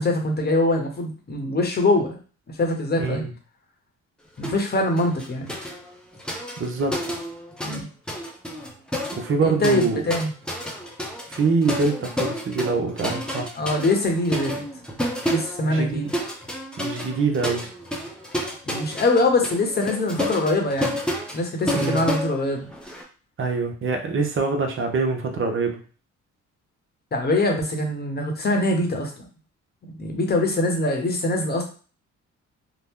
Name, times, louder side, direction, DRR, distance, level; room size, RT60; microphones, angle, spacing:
voice 1, 0.0-2.2 2.6-3.2 4.4-5.5 7.6-7.9 9.4-10.3 13.6-14.6 15.3-16.1 18.6-21.0 21.3-22.7 27.1-29.2 29.8-31.6, left 2 dB, 30° left, 2 dB, 0.9 m, -23 dB
voice 2, 3.0-3.3 6.6-7.0 9.1-10.0 11.3-13.5 15.6-16.1 16.8-17.7 21.7-22.1 23.4-25.8, right 4 dB, 45° right, 3 dB, 0.7 m, -24 dB
sound 1, 4.4-4.7 5.0-7.8 8.1-23.0, equal, 5° left, 0.6 m, -30 dB
2.9 x 2.0 x 3.6 m, 0.38 s
cardioid pair, 90°, 30 cm